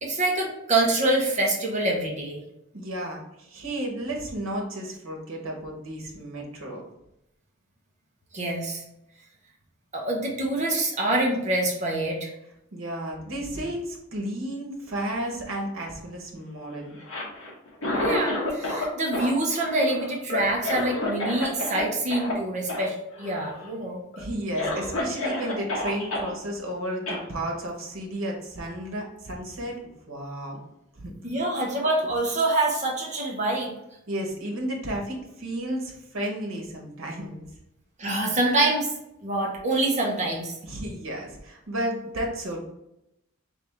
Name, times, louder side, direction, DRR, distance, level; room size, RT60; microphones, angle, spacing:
voice 1, 0.0-2.4 8.3-8.8 9.9-12.3 18.0-24.0 31.2-33.7 38.0-38.9 39.2-40.6, right 2 dB, 35° right, -1 dB, 1.0 m, -25 dB
voice 2, 2.7-6.8 12.7-17.0 24.2-29.8 30.1-30.6 31.0-31.1 34.1-37.4 40.6-42.6, right 1 dB, 75° right, -1 dB, 1.2 m, -33 dB
Cough, 16.9-18.9 19.1-21.8 22.1-22.3 22.7-22.9 23.1-23.7 24.1-24.2 24.6-26.3 27.1-27.2, left 2 dB, 75° left, 1.2 m, -30 dB
3.5 x 3.4 x 3.5 m, 0.84 s
head